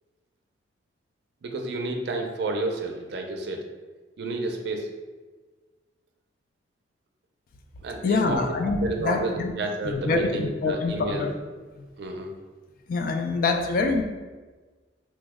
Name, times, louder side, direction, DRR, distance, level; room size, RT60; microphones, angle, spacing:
voice 1, 1.4-3.7 4.2-4.9 7.8-8.4 8.8-11.2 12.0-12.3, right 2 dB, 65° right, 3 dB, 0.4 m, -30 dB
voice 2, 8.0-9.5 9.8-11.3 11.8-11.9 12.9-14.0, left 3 dB, 50° left, 4 dB, 0.3 m, -25 dB
3.0 x 2.1 x 3.5 m, 1.3 s
head